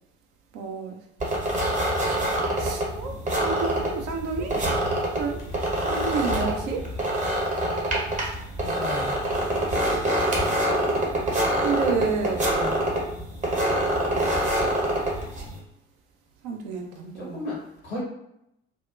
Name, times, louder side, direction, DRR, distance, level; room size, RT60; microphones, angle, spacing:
voice 1, 0.5-1.0 2.6-4.6 5.1-5.4 5.8-6.9 11.6-12.4 16.4-17.4, right 5 dB, 55° right, 2 dB, 0.6 m, -29 dB
sound 1, 1.2-15.6, right 1 dB, 20° right, 0.8 m, -26 dB
sound 2, 2.1-7.5, left 1 dB, 45° left, 0.7 m, -42 dB
voice 2, 8.6-9.1 12.5-12.9 17.0-17.6 17.8-18.0, left 1 dB, 80° left, -5 dB, 1.1 m, -34 dB
2.7 x 2.1 x 2.3 m, 0.80 s
figure-of-eight pair, 55°, 33 cm